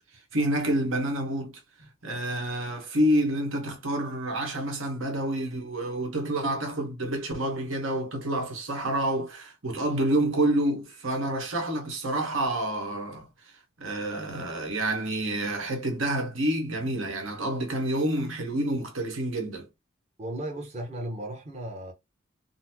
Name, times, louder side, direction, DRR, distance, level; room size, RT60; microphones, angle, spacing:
voice 1, 0.3-1.6 2.0-13.3 13.8-19.7, right 1 dB, 80° right, 1.2 m, -28 dB
voice 2, 20.2-21.9, right 1 dB, 35° right, 0.8 m, -35 dB
4.0 x 2.0 x 2.8 m
head